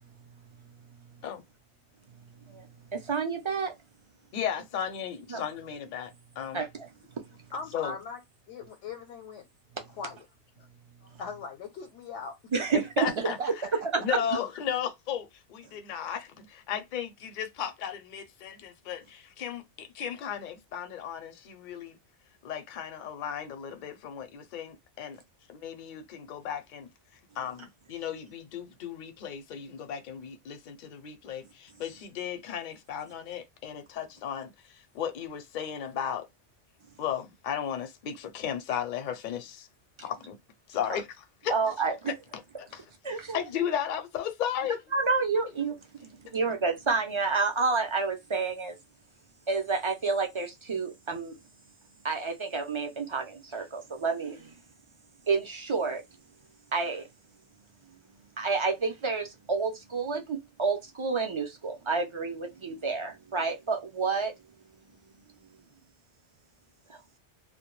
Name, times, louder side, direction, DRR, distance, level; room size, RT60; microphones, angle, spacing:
voice 1, 0.0-1.2 2.1-3.1 10.6-11.2 13.1-13.5 13.8-13.9, right 6 dB, 70° right, 0.8 m, -42 dB
voice 2, 2.9-3.7 5.3-5.4 6.5-6.9 12.5-13.1 14.1-14.2 41.5-42.1 43.0-43.4 44.9-48.8 49.5-51.3 52.0-54.5 55.3-56.0 56.7-57.0 58.4-64.3 66.9-67.0, right 4 dB, 45° right, 0.4 m, -29 dB
voice 3, 4.3-6.1 6.4-6.6 7.7-7.9 13.0-13.4 14.0-22.0 22.4-25.2 25.5-26.9 27.4-36.3 37.0-39.7 40.0-40.4 40.7-41.6 42.1-42.2 42.6-42.8 43.1-44.8, left 9 dB, 55° left, 0.6 m, -35 dB
voice 4, 7.5-8.2 8.5-9.5 9.9-10.3 10.6-10.7 11.0-12.3 12.6-12.7, left 5 dB, 85° left, 0.9 m, -40 dB
2.2 x 2.2 x 3.0 m
omnidirectional pair, 1.2 m